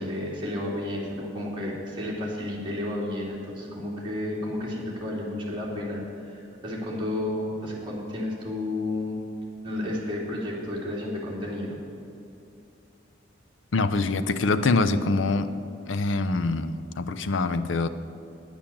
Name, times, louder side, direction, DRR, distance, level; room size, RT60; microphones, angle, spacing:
voice 1, 0.0-9.2 9.6-11.8, left 1 dB, 25° right, -5 dB, 2.7 m, -32 dB
voice 2, 13.7-15.5 15.9-17.9, left 3 dB, 80° left, 11 dB, 0.6 m, -24 dB
10.0 x 8.8 x 7.4 m, 2.7 s
head